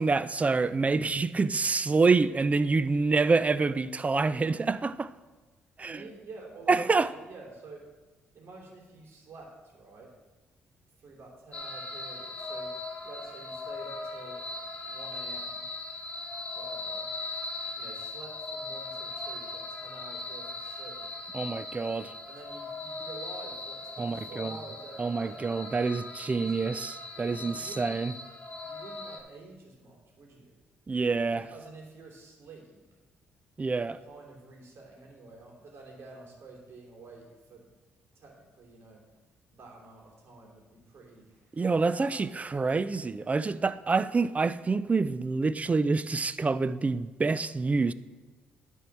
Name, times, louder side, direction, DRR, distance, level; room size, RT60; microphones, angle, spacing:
voice 1, 0.0-5.1 5.8-6.0 6.7-7.1 21.3-22.1 24.0-24.5 25.0-28.1 30.9-31.5 33.6-34.0 41.6-47.9, right 4 dB, 30° right, 0.5 m, -27 dB
voice 2, 5.8-7.8 8.3-10.1 11.0-12.7 13.0-15.6 16.5-17.1 17.7-21.1 22.3-25.5 26.3-26.6 27.3-27.9 28.6-30.5 31.3-32.8 33.8-37.6 38.1-39.0 39.5-42.4, right 3 dB, 60° right, 2.9 m, -49 dB
sound 1, 11.5-29.2, left 2 dB, 30° left, 2.1 m, -39 dB
10.0 x 4.6 x 7.2 m
supercardioid pair, 55°, 5 cm